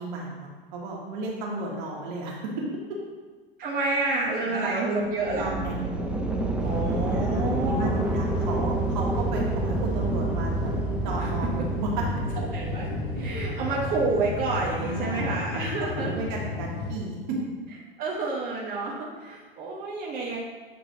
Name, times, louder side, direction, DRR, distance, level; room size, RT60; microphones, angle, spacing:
voice 1, 0.0-3.0 4.4-5.7 7.0-10.7 11.0-11.9 14.8-15.3 16.0-17.4, right 2 dB, 50° right, -2 dB, 1.9 m, -34 dB
voice 2, 3.6-5.5 6.6-8.0 11.2-11.3 12.5-12.9 13.1-16.1 18.0-20.4, right 3 dB, 30° right, -4 dB, 1.2 m, -29 dB
sound 1, 5.2-15.1, right 3 dB, 5° right, 0.6 m, -30 dB
sound 2, 6.6-17.0, left 3 dB, 35° left, 0.9 m, -33 dB
8.1 x 5.9 x 2.8 m, 1.4 s
figure-of-eight pair, 90°, 30 cm